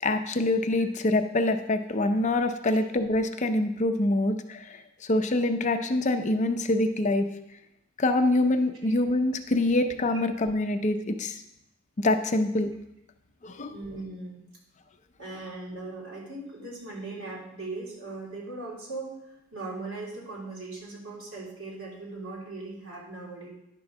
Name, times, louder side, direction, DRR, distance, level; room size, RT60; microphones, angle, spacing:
voice 1, 0.0-7.3 8.0-11.4 12.0-12.7 13.4-13.7, left 2 dB, 35° left, 7 dB, 0.5 m, -25 dB
voice 2, 13.7-14.4 15.2-23.5, right 3 dB, 70° right, -5 dB, 3.2 m, -39 dB
10.5 x 3.8 x 6.1 m, 0.81 s
head